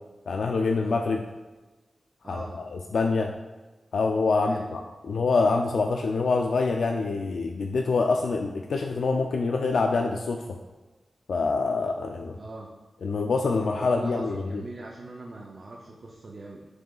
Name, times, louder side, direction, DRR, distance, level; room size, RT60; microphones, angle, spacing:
voice 1, 0.3-1.3 2.2-2.5 2.7-3.3 3.9-4.8 5.1-10.4 11.3-12.3 13.0-14.6, left 4 dB, 75° left, 2 dB, 0.3 m, -25 dB
voice 2, 2.2-2.6 4.5-4.7 12.3-12.7 13.6-16.7, right 2 dB, 40° right, -2 dB, 0.5 m, -41 dB
9.1 x 4.7 x 2.4 m, 1.2 s
wide cardioid pair, 160°, 0 cm